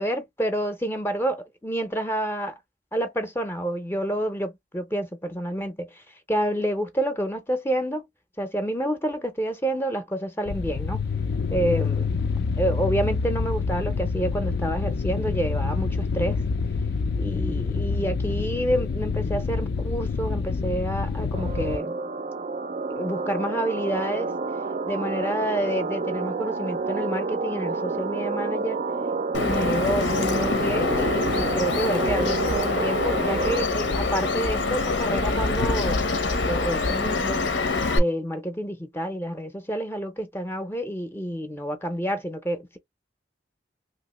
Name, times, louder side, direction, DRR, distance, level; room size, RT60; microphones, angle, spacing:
voice 1, 0.0-2.6 2.9-5.9 6.3-8.0 8.4-11.0 11.5-12.1 12.6-16.4 17.1-22.0 22.9-24.3 24.9-28.8 29.3-36.0 36.4-37.5 37.9-42.8, right 1 dB, 15° left, 0.6 m, -28 dB
sound 1, 10.5-21.8, left 4 dB, 60° left, 0.3 m, -27 dB
sound 2, 21.3-33.7, right 4 dB, 45° right, 0.4 m, -29 dB
Bird vocalization bird call bird song, 29.3-38.0, left 3 dB, 85° left, 0.8 m, -25 dB
2.9 x 2.8 x 3.0 m
head